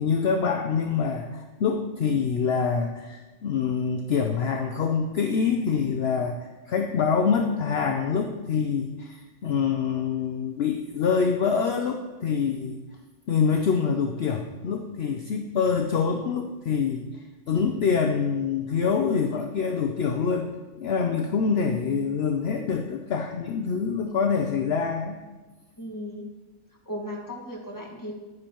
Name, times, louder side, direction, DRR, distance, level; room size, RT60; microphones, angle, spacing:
voice 1, 0.0-12.8 13.3-20.5 20.8-25.2, left 6 dB, 60° left, 4 dB, 0.8 m, -25 dB
voice 2, 25.8-26.3 26.8-28.1, equal, 15° left, -2 dB, 1.6 m, -36 dB
11.0 x 9.5 x 3.0 m, 1.2 s
omnidirectional pair, 1.3 m